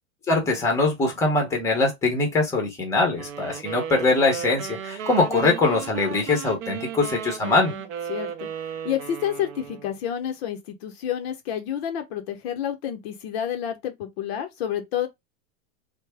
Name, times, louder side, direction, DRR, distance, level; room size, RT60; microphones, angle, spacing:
voice 1, 0.3-7.7, left 3 dB, 5° left, 0.7 m, -22 dB
sound 1, 3.1-10.0, right 8 dB, 35° right, 0.5 m, -35 dB
voice 2, 7.4-8.5 8.8-15.1, left 10 dB, 45° left, 0.6 m, -29 dB
3.3 x 2.1 x 3.3 m
supercardioid pair, 150°, 42 cm